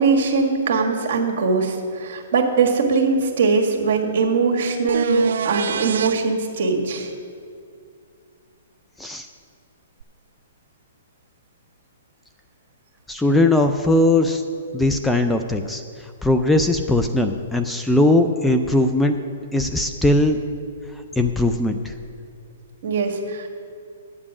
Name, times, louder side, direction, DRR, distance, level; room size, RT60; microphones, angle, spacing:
voice 1, 0.0-7.1 22.8-23.5, right 4 dB, 55° right, 1 dB, 1.7 m, -21 dB
sound 1, 4.9-6.1 10.0-10.1, right 7 dB, 70° right, 0.3 m, -25 dB
voice 2, 13.1-14.4 14.7-15.8 16.2-19.2 19.5-20.4 21.1-21.9, left 1 dB, 5° left, 6 dB, 0.4 m, -19 dB
9.7 x 7.4 x 6.0 m, 2.3 s
hypercardioid pair, 145°, 0 cm